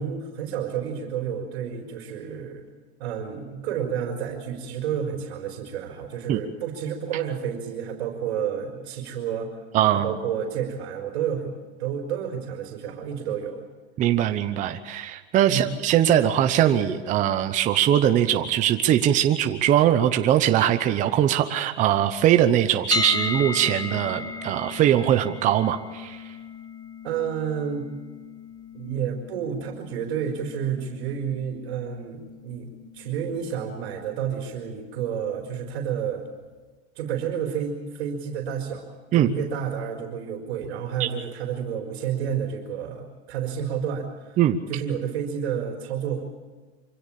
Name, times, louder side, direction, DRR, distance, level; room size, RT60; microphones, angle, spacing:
voice 1, 0.0-2.6 3.0-9.5 10.0-11.5 11.8-13.6 15.5-15.7 27.0-27.8 28.7-32.7 32.9-36.3 36.9-44.4 44.7-46.2, right 8 dB, 60° right, 2 dB, 4.2 m, -30 dB
voice 2, 9.7-10.2 14.0-26.2 39.1-39.3 41.0-41.1 44.4-44.6, right 11 dB, 20° right, 8 dB, 0.9 m, -21 dB
sound 1, 22.9-34.8, left 4 dB, 10° left, 0.9 m, -36 dB
25.0 x 16.5 x 8.6 m, 1.4 s
supercardioid pair, 150°, 35 cm